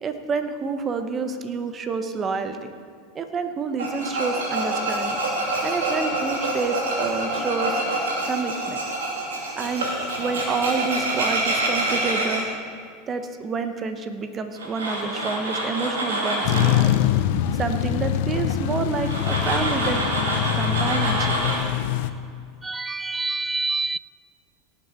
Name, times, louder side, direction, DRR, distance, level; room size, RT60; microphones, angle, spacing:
voice 1, 0.0-2.7 3.1-5.2 5.6-7.8 8.3-8.8 9.6-9.9 10.2-12.5 13.1-16.9 17.5-20.0 20.5-21.3, right 4 dB, 30° right, 1.1 m, -28 dB
Tools, 3.8-12.4 14.5-16.8 19.0-21.6, right 1 dB, 85° right, 2.6 m, -26 dB
sound 1, 16.4-22.1, left 11 dB, 65° left, 0.6 m, -24 dB
voice 2, 22.6-24.0, right 3 dB, 15° right, 0.3 m, -27 dB
18.0 x 6.9 x 4.5 m
hypercardioid pair, 90°, 0 cm